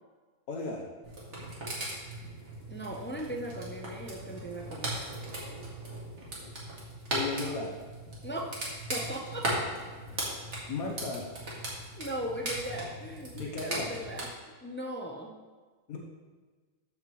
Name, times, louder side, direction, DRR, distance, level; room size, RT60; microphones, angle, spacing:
voice 1, 0.5-0.8 7.1-7.8 10.7-11.3 13.3-14.0 15.9-16.0, left 3 dB, 85° left, 0 dB, 1.4 m, -35 dB
sound 1, 1.0-14.2, right 1 dB, 55° right, 2.2 m, -38 dB
voice 2, 2.7-5.0 8.2-8.6 8.9-9.5 12.0-14.3 14.6-15.4, right 1 dB, 20° left, 1 dB, 0.3 m, -38 dB
13.5 x 5.9 x 3.1 m, 1.4 s
omnidirectional pair, 1.5 m